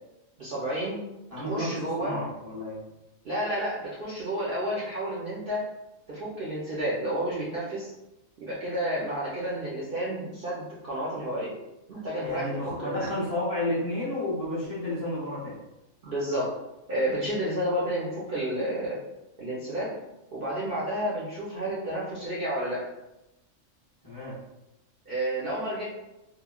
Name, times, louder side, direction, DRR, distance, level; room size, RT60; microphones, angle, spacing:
voice 1, 0.4-1.0 1.4-2.1 3.2-5.6 6.1-7.9 8.4-11.5 11.9-12.5 12.8-13.0 16.0-16.5 16.9-19.0 19.4-19.9 20.3-22.8 25.1-25.8, right 1 dB, 55° right, -7 dB, 0.6 m, -30 dB
voice 2, 1.3-2.8 12.2-15.6 24.0-24.4, left 1 dB, 30° left, -9 dB, 0.7 m, -31 dB
3.0 x 2.1 x 2.2 m, 0.94 s
omnidirectional pair, 1.4 m